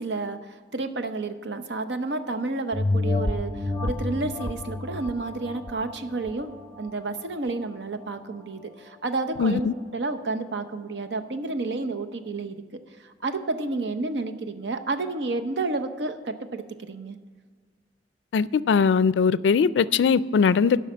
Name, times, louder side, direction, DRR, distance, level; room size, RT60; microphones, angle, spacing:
voice 1, 0.0-12.6 13.0-17.2, right 3 dB, 75° right, 0.7 m, -30 dB
sound 1, 2.7-7.7 8.1-8.2, left 2 dB, 10° left, 0.8 m, -30 dB
voice 2, 9.4-9.7 18.3-20.8, left 6 dB, 80° left, 0.3 m, -20 dB
12.0 x 5.6 x 7.3 m
head